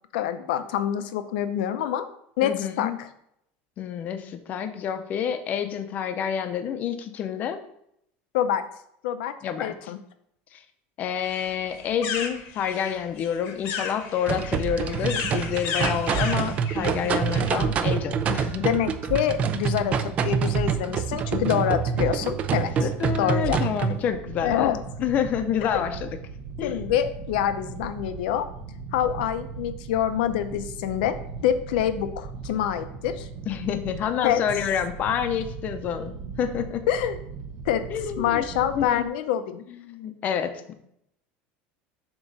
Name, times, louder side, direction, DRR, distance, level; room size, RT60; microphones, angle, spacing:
voice 1, 0.1-2.1 2.4-3.1 8.3-8.6 9.0-9.3 9.6-10.0 18.6-22.9 23.2-23.7 24.4-24.8 25.6-25.8 26.6-28.5 28.9-31.1 31.4-33.3 34.2-34.4 36.9-37.2 37.6-37.8 38.2-39.6, left 10 dB, 90° left, 10 dB, 0.6 m, -26 dB
voice 2, 2.4-3.0 3.8-7.6 9.4-9.7 10.5-10.6 11.0-18.7 22.8-26.2 26.6-26.8 33.5-36.8 37.9-38.5 38.7-39.1 39.7-40.7, left 8 dB, 35° left, 8 dB, 0.6 m, -28 dB
sound 1, 11.2-17.5, left 6 dB, 50° left, 0.9 m, -34 dB
sound 2, 14.3-24.0, right 6 dB, 25° right, 0.3 m, -26 dB
sound 3, 24.0-39.1, right 5 dB, 65° right, 1.1 m, -38 dB
7.3 x 3.0 x 5.3 m, 0.74 s
cardioid pair, 165°, 5 cm